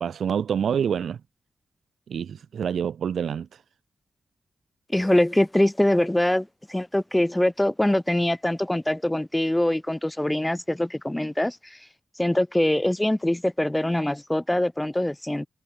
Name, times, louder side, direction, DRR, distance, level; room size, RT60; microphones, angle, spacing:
voice 1, 0.0-1.2 2.1-3.5, right 8 dB, 75° right, 1.8 m, -27 dB
voice 2, 4.9-11.8 12.2-15.5, left 1 dB, 15° left, 1.1 m, -23 dB
supercardioid pair, 40°, 0 cm